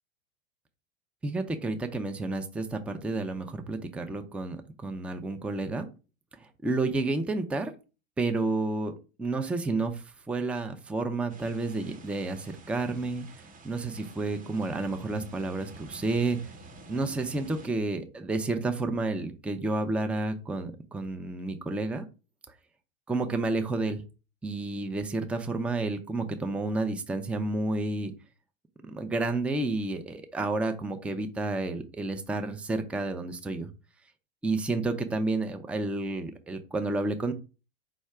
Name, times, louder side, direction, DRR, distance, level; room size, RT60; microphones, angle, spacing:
voice 1, 1.2-5.9 6.4-7.7 8.2-8.9 9.2-13.3 13.6-16.5 16.9-22.1 23.1-24.0 24.4-28.1 28.8-33.7 34.4-37.3, right 2 dB, 5° right, 6 dB, 0.4 m, -30 dB
sound 1, 11.3-17.7, right 2 dB, 25° right, 0.9 m, -49 dB
4.7 x 2.1 x 4.6 m, 0.32 s
hypercardioid pair, 90°, 32 cm